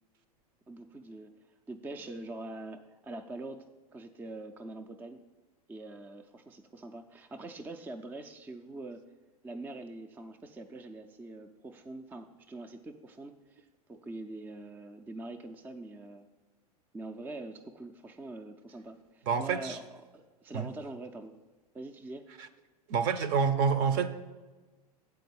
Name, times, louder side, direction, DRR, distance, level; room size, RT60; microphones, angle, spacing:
voice 1, 0.7-1.3 1.7-3.7 3.9-5.2 5.7-9.0 9.4-16.3 16.9-21.4 21.7-22.3, right 2 dB, 10° right, 6 dB, 0.4 m, -44 dB
voice 2, 19.3-19.8 20.5-20.7 22.9-24.1, right 6 dB, 45° right, 12 dB, 0.7 m, -27 dB
7.7 x 4.7 x 6.9 m, 1.2 s
hypercardioid pair, 95°, 20 cm